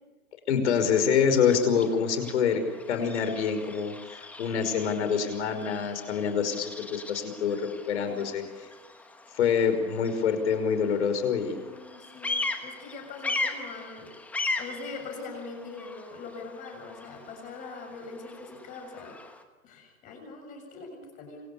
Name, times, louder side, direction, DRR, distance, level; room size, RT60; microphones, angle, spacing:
voice 1, 0.5-2.6 2.9-8.4 9.4-11.6, left 7 dB, 55° left, 9 dB, 5.5 m, -26 dB
Bird vocalization bird call bird song, 0.7-19.4, left 3 dB, 5° left, 1.2 m, -39 dB
voice 2, 8.0-8.5 11.5-19.2 19.6-21.4, left 4 dB, 20° left, 3 dB, 7.0 m, -42 dB
27.0 x 25.0 x 8.6 m, 1.1 s
hypercardioid pair, 160°, 42 cm